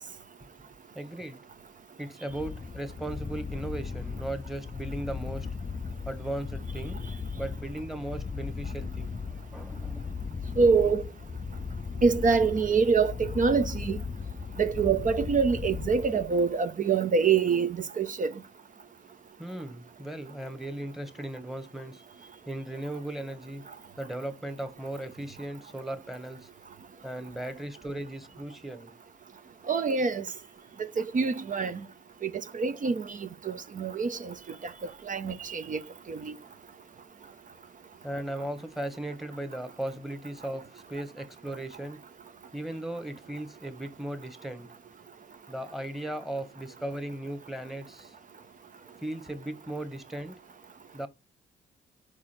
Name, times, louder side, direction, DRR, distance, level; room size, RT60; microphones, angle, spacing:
voice 1, 0.9-1.5 2.0-5.5 6.1-7.0 7.3-9.2 9.5-10.1 19.4-22.0 22.5-23.6 24.0-26.5 27.0-28.9 38.0-42.0 42.5-44.7 45.5-48.1 49.0-50.3 50.9-51.1, right 1 dB, ahead, 1.3 m, -37 dB
sound 1, 2.3-16.6, left 5 dB, 25° left, 0.5 m, -37 dB
voice 2, 10.6-11.0 12.0-14.0 14.6-18.3 29.7-30.2 31.0-31.8 32.2-34.3 35.1-35.8 36.1-36.3, right 5 dB, 40° right, 0.9 m, -25 dB
4.8 x 4.8 x 5.9 m
cardioid pair, 90°, 20 cm